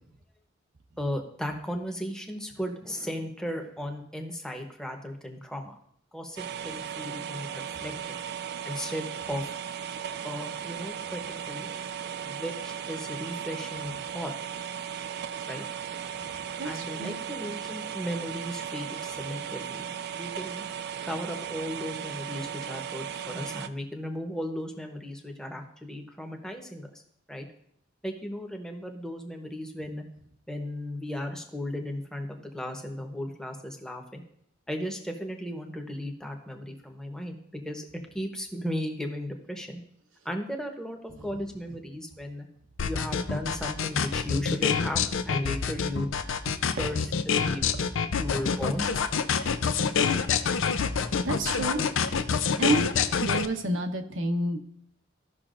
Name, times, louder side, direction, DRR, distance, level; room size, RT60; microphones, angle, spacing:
voice 1, 1.0-5.8 6.1-8.2 8.6-9.4 10.2-11.7 12.2-14.3 14.6-14.7 15.5-15.6 16.6-20.6 21.0-26.9 27.3-27.5 28.0-30.0 30.5-34.2 34.7-37.8 38.1-39.8 40.2-42.5 42.8-46.1 46.8-47.7 48.0-48.9 49.7-49.9, equal, 5° left, 3 dB, 0.9 m, -36 dB
sound 1, 6.4-23.7, right 8 dB, 55° right, 0.4 m, -36 dB
voice 2, 16.6-17.1 51.2-51.8 52.6-54.6, right 2 dB, 80° right, 4 dB, 0.9 m, -29 dB
sound 2, 42.8-53.5, left 6 dB, 90° left, 0.5 m, -26 dB
15.0 x 5.9 x 2.5 m, 0.69 s
head